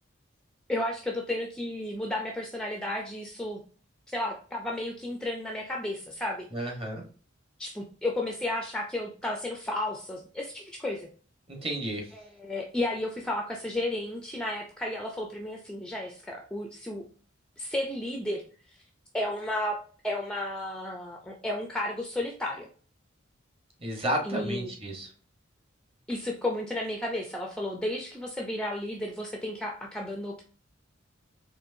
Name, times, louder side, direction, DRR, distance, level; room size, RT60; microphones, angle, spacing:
voice 1, 0.7-3.6 4.1-6.7 7.6-11.1 12.1-17.0 17.6-18.4 19.1-19.8 20.0-22.7 24.2-24.7 26.1-30.4, left 1 dB, 5° left, 0 dB, 0.4 m, -33 dB
voice 2, 6.5-7.0 11.5-12.1 23.8-25.1, equal, 30° right, 2 dB, 1.1 m, -32 dB
4.4 x 3.1 x 2.6 m, 0.41 s
head